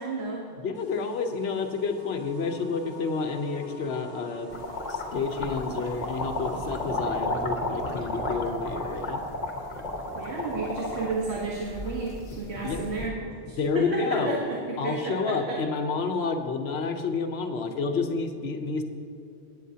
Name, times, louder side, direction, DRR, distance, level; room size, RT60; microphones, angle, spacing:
voice 1, 0.0-0.6 10.1-15.6, right 3 dB, 70° right, -2 dB, 1.4 m, -32 dB
voice 2, 0.6-4.6 4.9-9.2 12.6-12.9 13.6-14.4 14.8-18.8, left 4 dB, 70° left, 6 dB, 1.1 m, -29 dB
sound 1, 0.7-7.0, right 1 dB, 25° right, 2.4 m, -47 dB
sound 2, 4.5-13.1, left 1 dB, 40° left, 1.4 m, -33 dB
16.5 x 9.1 x 2.8 m, 2.7 s
omnidirectional pair, 1.1 m